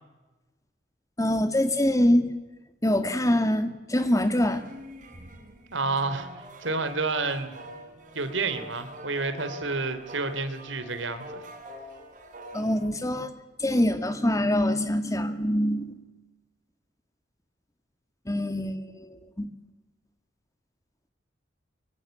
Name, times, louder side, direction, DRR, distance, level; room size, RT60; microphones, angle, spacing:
voice 1, 1.2-2.3 2.8-4.6 12.5-13.3 13.6-16.0 18.3-19.5, left 1 dB, 15° left, 9 dB, 2.1 m, -24 dB
sound 1, 3.9-12.9, right 1 dB, 45° right, 5.2 m, -45 dB
voice 2, 5.7-6.3 6.6-7.5 8.1-11.4, right 3 dB, 80° right, 11 dB, 3.1 m, -29 dB
25.0 x 23.5 x 9.0 m, 1.1 s
head